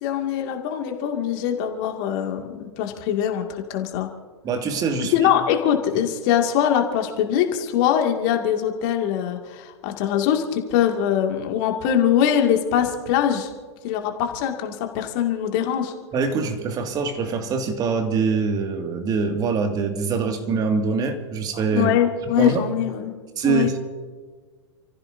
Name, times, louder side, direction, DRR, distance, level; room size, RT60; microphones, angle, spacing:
voice 1, 0.0-4.1 5.1-13.5 13.8-15.9 21.7-23.1 23.4-23.7, left 9 dB, 45° left, 3 dB, 2.3 m, -22 dB
voice 2, 4.4-5.1 16.1-21.9 22.4-22.6 23.4-23.8, right 4 dB, 25° right, 5 dB, 2.2 m, -24 dB
29.5 x 15.0 x 2.7 m, 1.4 s
figure-of-eight pair, 100°, 15 cm